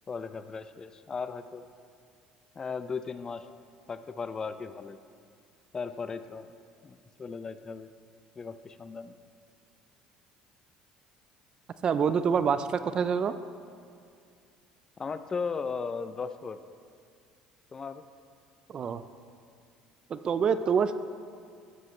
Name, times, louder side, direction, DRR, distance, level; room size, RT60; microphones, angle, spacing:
voice 1, 0.1-1.6 2.6-3.5 3.9-5.0 5.7-6.5 6.8-7.9 8.4-9.1 15.0-16.6 17.7-18.0, left 5 dB, 30° left, 11 dB, 0.6 m, -36 dB
voice 2, 11.8-13.3 18.7-19.0 20.1-20.9, right 6 dB, 40° right, 12 dB, 0.6 m, -26 dB
13.5 x 13.0 x 3.2 m, 2.3 s
supercardioid pair, 90°, 2 cm